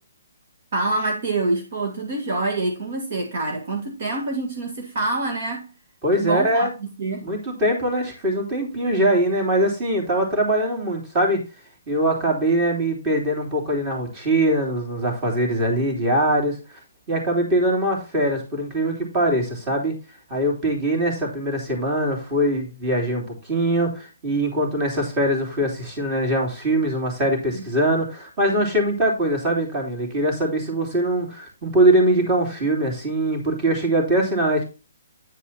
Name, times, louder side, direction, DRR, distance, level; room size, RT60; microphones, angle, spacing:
voice 1, 0.7-5.7 6.2-6.7 7.0-7.3 27.5-27.7, right 2 dB, 45° right, 1.9 m, -26 dB
voice 2, 6.0-6.7 7.2-11.4 11.9-16.6 17.1-20.0 20.3-34.6, right 1 dB, 20° right, 3.3 m, -22 dB
9.9 x 4.7 x 4.3 m
hypercardioid pair, 160°, 0 cm